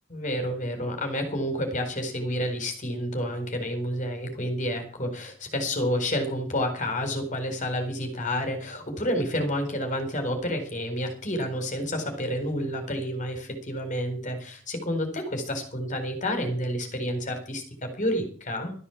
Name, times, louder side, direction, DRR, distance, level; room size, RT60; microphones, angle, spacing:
voice 1, 0.1-18.7, equal, 40° left, 5 dB, 4.3 m, -29 dB
13.5 x 9.9 x 7.1 m, 0.43 s
head